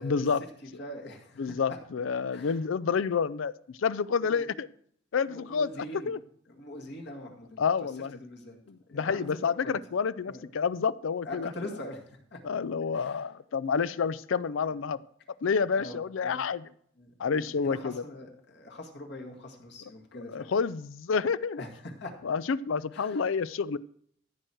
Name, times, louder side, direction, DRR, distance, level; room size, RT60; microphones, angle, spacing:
voice 1, 0.0-0.4 1.4-4.7 5.1-5.7 6.1-6.2 7.6-8.2 8.7-11.5 12.4-15.0 15.4-16.6 17.2-18.0 20.3-21.6 22.2-23.8, left 5 dB, 75° left, 18 dB, 0.4 m, -29 dB
voice 2, 0.6-1.6 2.3-2.6 4.2-4.5 5.3-6.1 6.5-8.6 8.9-9.4 9.6-9.8 10.3-10.4 11.3-12.4 12.9-13.2 15.8-16.5 17.0-20.5 21.6-21.7 22.0-22.1 22.9-23.2, left 1 dB, 55° left, 1 dB, 2.1 m, -43 dB
14.5 x 7.8 x 4.5 m, 0.64 s
head